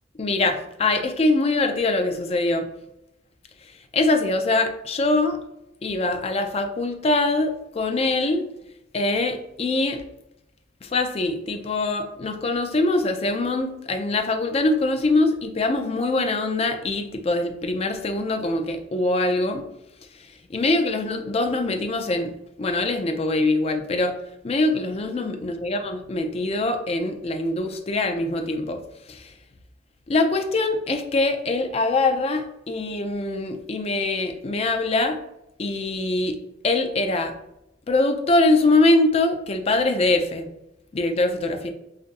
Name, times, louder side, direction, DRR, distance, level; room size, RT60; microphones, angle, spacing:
voice 1, 0.2-2.7 3.9-5.4 5.8-8.4 8.9-10.0 10.8-19.6 20.5-24.2 24.4-28.8 29.1-29.3 30.1-35.2 35.6-36.4 36.6-37.3 37.9-40.5 40.9-41.7, left 2 dB, 35° left, 5 dB, 0.4 m, -23 dB
5.2 x 2.5 x 2.5 m, 0.86 s
head